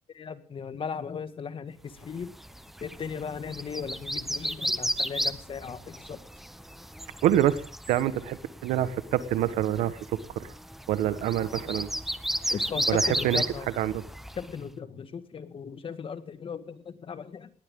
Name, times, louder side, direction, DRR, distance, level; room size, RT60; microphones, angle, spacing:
voice 1, 0.1-2.3 2.8-6.2 12.5-13.7 14.3-17.5, left 6 dB, 45° left, 11 dB, 1.9 m, -37 dB
sound 1, 2.1-14.6, equal, ahead, 1.1 m, -34 dB
voice 2, 7.2-7.6 7.9-10.0 10.3-10.5 10.9-11.9 12.9-13.4 13.8-14.0, right 12 dB, 90° right, 13 dB, 1.4 m, -26 dB
19.5 x 18.5 x 3.8 m, 0.41 s
cardioid pair, 95°, 13 cm